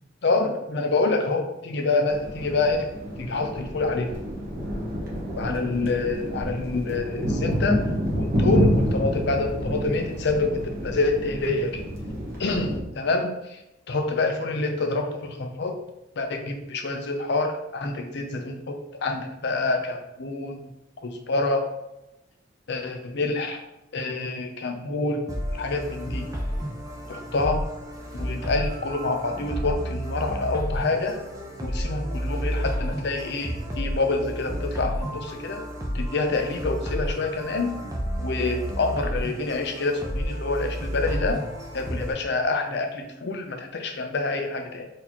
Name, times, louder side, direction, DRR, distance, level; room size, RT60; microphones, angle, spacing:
voice 1, 0.2-2.9 3.2-4.1 5.4-7.8 8.1-11.9 12.4-13.6 13.9-15.8 16.2-20.7 21.0-21.7 22.7-23.6 23.9-25.2 25.5-26.3 27.1-27.6 28.1-31.2 31.6-35.6 35.9-37.7 38.2-41.4 41.7-44.9, left 3 dB, 60° left, 5 dB, 0.5 m, -27 dB
sound 1, 2.1-12.8, equal, 45° right, 0.9 m, -28 dB
sound 2, 25.3-42.1, equal, 15° right, 0.5 m, -31 dB
4.0 x 2.7 x 2.9 m, 0.90 s
head